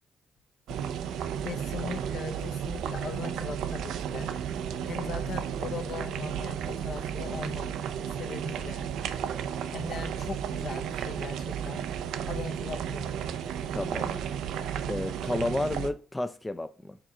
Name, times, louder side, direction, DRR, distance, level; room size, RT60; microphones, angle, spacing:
sound 1, 0.7-15.9, right 8 dB, 85° right, 0.4 m, -33 dB
voice 1, 1.4-4.3 4.8-7.8 8.2-8.9 9.7-11.9 12.3-13.2, left 6 dB, 60° left, 0.7 m, -39 dB
voice 2, 13.7-14.2 14.9-17.0, left 2 dB, 15° left, 0.4 m, -31 dB
5.1 x 4.4 x 4.8 m
cardioid pair, 90°, 0 cm